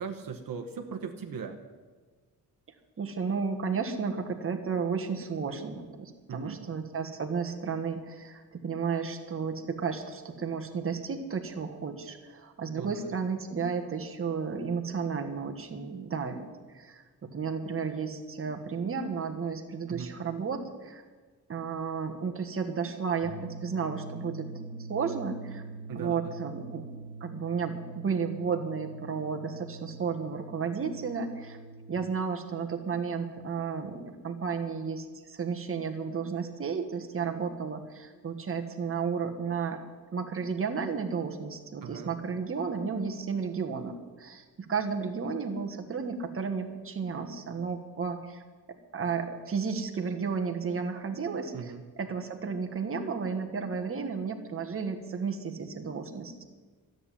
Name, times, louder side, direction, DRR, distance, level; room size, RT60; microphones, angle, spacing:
voice 1, 0.0-1.6 6.3-6.6 12.7-13.1 19.9-20.1 25.9-26.3 41.8-42.1 51.5-51.8, right 6 dB, 65° right, 4 dB, 1.1 m, -38 dB
voice 2, 3.0-16.5 16.7-21.0 21.5-25.6 25.9-26.9 27.2-31.6 31.9-39.8 40.1-48.4 48.9-56.4, right 5 dB, 35° right, 4 dB, 1.4 m, -33 dB
sound 1, 23.2-32.0, right 3 dB, 85° left, 4.5 m, -44 dB
13.0 x 7.9 x 9.9 m, 1.4 s
wide cardioid pair, 145°, 36 cm